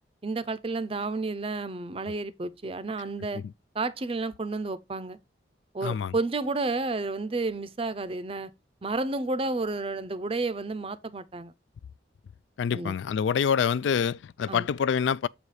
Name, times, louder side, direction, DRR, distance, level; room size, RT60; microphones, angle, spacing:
voice 1, 0.2-3.4 3.7-5.2 5.7-8.5 8.8-11.5 12.7-12.9 14.5-14.7, right 3 dB, 30° right, 0.5 m, -31 dB
voice 2, 5.8-6.1 12.6-15.3, left 7 dB, 85° left, 0.3 m, -26 dB
7.1 x 4.1 x 4.8 m
head